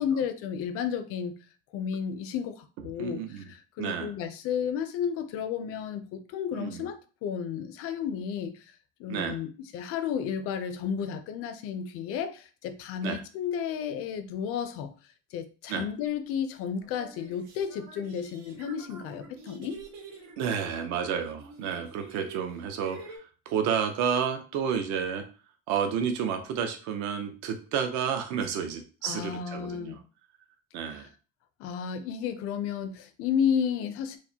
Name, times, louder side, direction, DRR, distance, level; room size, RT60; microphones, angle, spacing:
voice 1, 0.0-1.4 1.7-3.2 3.5-7.0 7.2-8.6 9.0-14.9 15.3-19.8 29.0-30.0 31.6-34.2, left 7 dB, 45° left, 0.4 m, -32 dB
voice 2, 3.0-3.5 3.8-4.2 6.5-6.9 9.1-9.4 13.0-13.2 15.7-15.9 20.4-25.2 25.7-30.0 30.7-31.1, right 7 dB, 55° right, 0.7 m, -31 dB
sound 1, 16.0-16.1 16.8-23.2, right 4 dB, 80° right, 1.5 m, -48 dB
4.6 x 2.1 x 2.7 m
cardioid pair, 170°, 34 cm